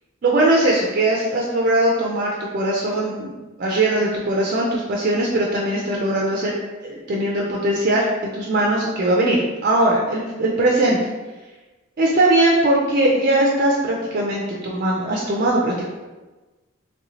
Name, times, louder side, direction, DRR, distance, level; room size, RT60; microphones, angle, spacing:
voice 1, 0.2-6.5 6.8-11.0 12.0-15.8, right 1 dB, 45° right, -3 dB, 0.4 m, -20 dB
3.1 x 2.7 x 2.9 m, 1.2 s
head